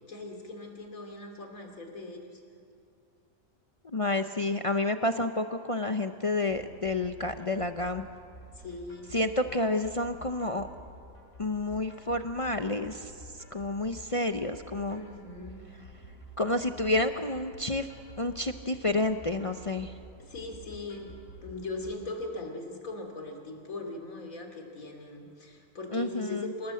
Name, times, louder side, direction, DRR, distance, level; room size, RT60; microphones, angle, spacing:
voice 1, 0.0-2.4 8.5-9.1 14.9-15.7 20.2-26.7, left 2 dB, 75° left, 3 dB, 3.3 m, -40 dB
voice 2, 3.9-8.1 9.1-10.7 11.4-13.1 13.5-15.0 16.4-17.9 18.2-19.9 25.9-26.5, left 2 dB, 35° left, 7 dB, 0.5 m, -29 dB
sound 1, 6.5-21.9, right 1 dB, 55° left, 5.4 m, -50 dB
27.5 x 18.0 x 7.7 m, 2.4 s
omnidirectional pair, 1.5 m